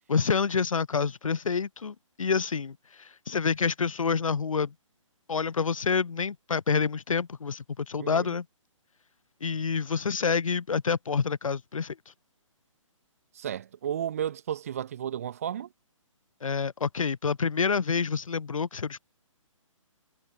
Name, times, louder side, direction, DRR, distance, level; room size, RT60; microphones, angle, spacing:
voice 1, 0.1-4.7 5.3-8.4 9.4-12.0 16.4-19.0, left 5 dB, 75° left, 1.5 m, -28 dB
voice 2, 8.0-8.3 13.3-15.7, right 9 dB, 25° right, 1.4 m, -33 dB
hypercardioid pair, 175°, 17 cm